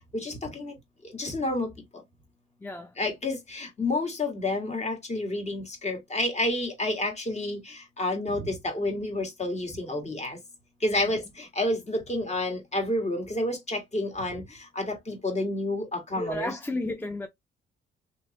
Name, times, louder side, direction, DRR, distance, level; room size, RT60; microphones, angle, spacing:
voice 1, 0.1-0.8 1.0-2.0 3.0-10.4 10.8-16.6, left 1 dB, 35° left, 1.7 m, -30 dB
voice 2, 16.1-17.3, left 1 dB, 10° left, 0.5 m, -33 dB
3.0 x 3.0 x 2.9 m
cardioid pair, 90°, 20 cm